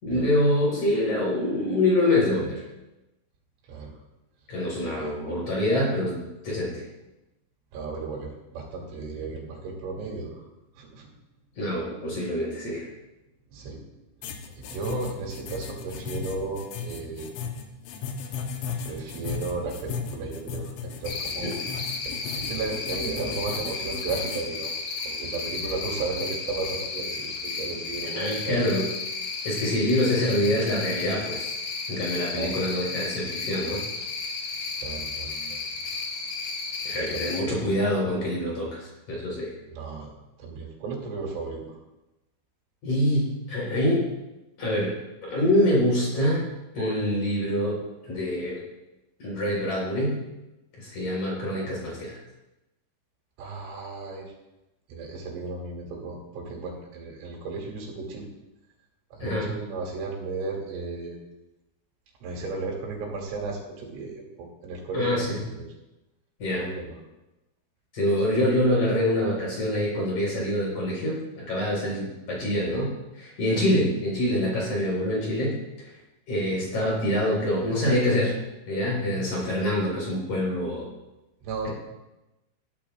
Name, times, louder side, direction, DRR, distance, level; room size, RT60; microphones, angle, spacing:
voice 1, 0.0-2.6 4.5-6.9 11.6-12.9 21.4-21.6 28.2-28.9 29.4-31.5 31.9-33.8 36.8-39.5 42.8-44.1 44.6-44.9 45.2-46.5 46.7-48.6 49.2-50.2 50.8-52.2 59.2-59.5 64.9-65.4 66.4-66.7 67.9-75.6 75.8-75.9 76.3-78.4 78.7-80.9 81.6-81.7, left 1 dB, 40° left, -3 dB, 5.9 m, -25 dB
voice 2, 7.7-10.4 10.8-11.1 13.5-13.8 14.5-17.3 18.8-24.7 25.1-28.7 32.3-32.6 34.8-35.7 36.9-37.6 39.7-40.1 40.4-41.7 53.4-54.3 54.9-58.3 59.1-61.2 62.2-65.7 66.5-67.0 81.4-81.7, right 3 dB, 80° right, -1 dB, 5.3 m, -34 dB
sound 1, 14.2-24.5, left 6 dB, 75° left, 3.3 m, -36 dB
Cricket, 21.0-37.4, left 4 dB, 55° left, 2.5 m, -33 dB
21.0 x 13.5 x 2.6 m, 0.99 s
omnidirectional pair, 5.6 m